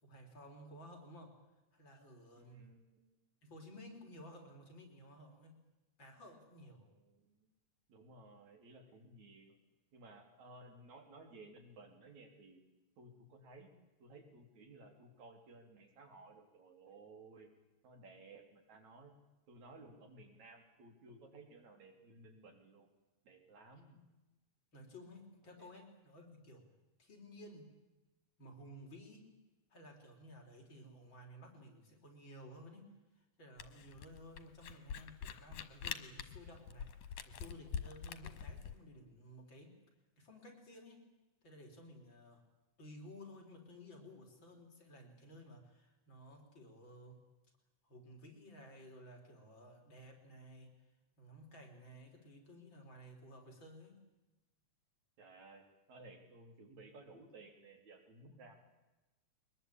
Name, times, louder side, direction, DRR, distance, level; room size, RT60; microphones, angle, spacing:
voice 1, 0.0-1.3 1.7-2.6 3.4-5.5 6.0-6.8 24.7-26.7 27.0-27.7 28.4-29.3 29.7-32.9 33.2-39.7 40.2-41.0 41.4-42.4 42.8-47.2 47.8-50.7 51.2-54.0, equal, 40° left, 2 dB, 4.6 m, -55 dB
voice 2, 2.4-3.2 6.6-7.5 7.9-9.6 9.9-12.6 13.0-13.7 14.0-17.5 17.8-19.1 19.5-22.9 23.2-24.0 25.6-25.7 55.2-58.5, right 2 dB, 70° right, 4 dB, 4.6 m, -57 dB
Camera, 33.6-38.7, left 8 dB, 85° left, 2.9 m, -44 dB
23.0 x 20.5 x 8.7 m, 1.0 s
omnidirectional pair, 3.4 m